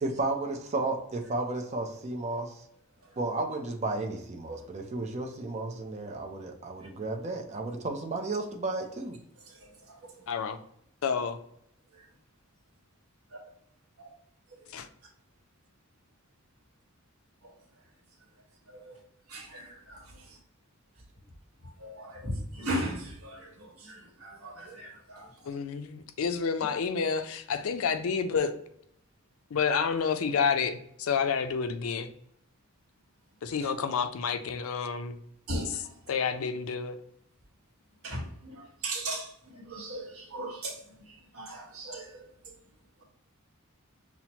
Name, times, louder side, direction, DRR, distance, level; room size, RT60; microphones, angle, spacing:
voice 1, 0.0-2.6 3.2-9.2 23.6-23.9, right 2 dB, 30° right, 0.5 m, -33 dB
voice 2, 10.3-10.6 11.0-11.4 14.7-14.9 25.5-28.5 29.5-32.1 33.4-35.2 36.1-36.9, left 6 dB, 70° left, 0.4 m, -29 dB
voice 3, 19.3-20.2 21.8-25.3 35.5-35.8 38.0-40.7 41.3-42.2, right 1 dB, 80° right, 1.1 m, -37 dB
5.8 x 2.0 x 2.8 m
head